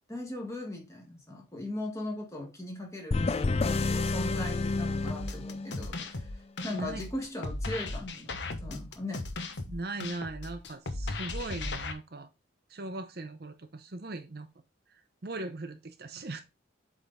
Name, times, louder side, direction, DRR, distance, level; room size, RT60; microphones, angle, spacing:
voice 1, 0.1-9.2, left 1 dB, 15° left, 1.7 m, -39 dB
sound 1, 3.1-5.9, left 3 dB, 30° left, 0.4 m, -29 dB
sound 2, 5.1-11.9, left 2 dB, 65° left, 1.0 m, -37 dB
voice 2, 6.6-7.1 9.7-12.3 12.7-14.5 14.9-16.4, right 2 dB, 50° right, 0.7 m, -39 dB
8.0 x 3.6 x 4.1 m
head